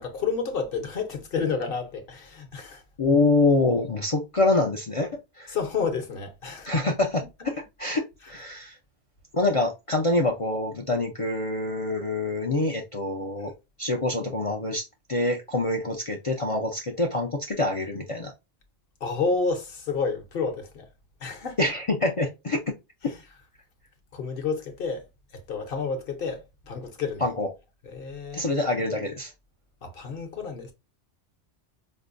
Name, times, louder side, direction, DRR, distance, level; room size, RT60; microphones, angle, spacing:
voice 1, 0.0-2.8 5.5-6.7 19.0-20.9 21.2-21.6 23.0-23.2 24.1-25.1 25.3-27.2 27.8-28.4 29.8-30.7, left 5 dB, 55° left, 1.0 m, -30 dB
voice 2, 3.0-5.6 6.7-8.8 9.3-13.5 13.8-14.8 15.1-18.3 21.6-22.6 27.2-27.5 28.3-29.3, left 2 dB, 40° left, 0.5 m, -25 dB
5.3 x 2.1 x 2.5 m
omnidirectional pair, 1.2 m